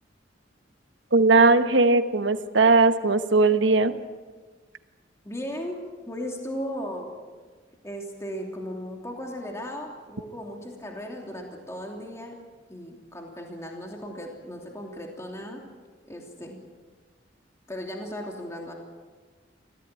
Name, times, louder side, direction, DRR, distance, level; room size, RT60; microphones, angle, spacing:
voice 1, 1.1-3.9, right 3 dB, 85° right, 10 dB, 1.2 m, -19 dB
voice 2, 5.2-5.8 6.1-7.1 7.8-12.4 12.7-15.6 16.1-16.6 17.7-18.7, equal, 15° left, 1 dB, 2.9 m, -36 dB
24.5 x 16.5 x 9.1 m, 1.4 s
head